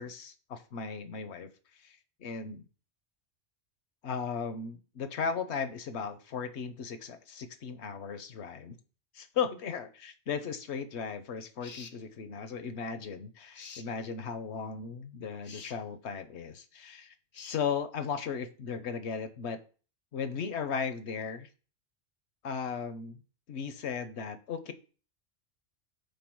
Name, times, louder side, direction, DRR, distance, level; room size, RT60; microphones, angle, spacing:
voice 1, 0.0-1.5 1.8-2.7 4.0-8.8 9.1-17.1 17.4-19.6 20.1-21.5 22.4-23.2 23.5-24.7, left 6 dB, 70° left, 10 dB, 1.1 m, -36 dB
sound 1, 11.6-12.0 13.5-13.9 15.4-15.8 17.3-17.6, left 5 dB, 50° left, 0.8 m, -47 dB
5.3 x 4.7 x 6.1 m, 0.37 s
omnidirectional pair, 1.2 m